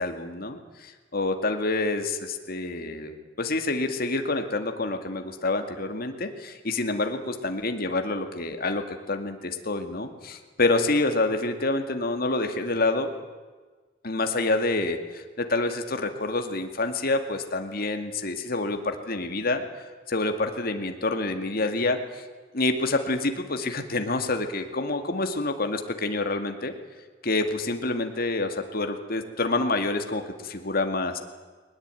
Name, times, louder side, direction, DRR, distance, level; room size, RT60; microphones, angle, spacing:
voice 1, 0.0-13.1 14.0-19.6 20.1-22.2 22.5-26.7 27.2-31.2, left 2 dB, 55° left, 6 dB, 2.2 m, -27 dB
21.5 x 19.5 x 9.2 m, 1.4 s
head